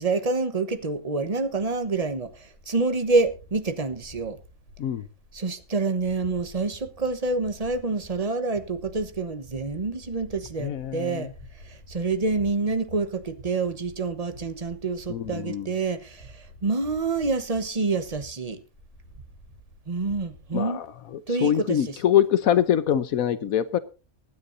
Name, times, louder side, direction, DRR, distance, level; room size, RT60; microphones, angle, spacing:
voice 1, 0.0-4.4 5.3-18.6 19.9-20.8 21.3-22.0, right 3 dB, 30° right, 10 dB, 1.1 m, -27 dB
sound 1, 0.7-20.6, equal, 65° left, 7.5 m, -51 dB
sound 2, 7.8-7.9 8.5-9.0 9.5-9.9 10.4-10.8 11.4-11.8 12.4-12.8 13.3-13.8 14.3-14.7 15.2-15.6 16.2-16.6 17.2-17.6 18.2-18.6 19.1-19.6 20.1-20.5, right 3 dB, 65° right, 1.8 m, -48 dB
voice 2, 10.6-11.3 15.1-15.7 20.5-20.9 21.1-23.8, left 10 dB, 80° left, 14 dB, 1.3 m, -24 dB
23.5 x 9.7 x 2.7 m, 0.31 s
omnidirectional pair, 1.5 m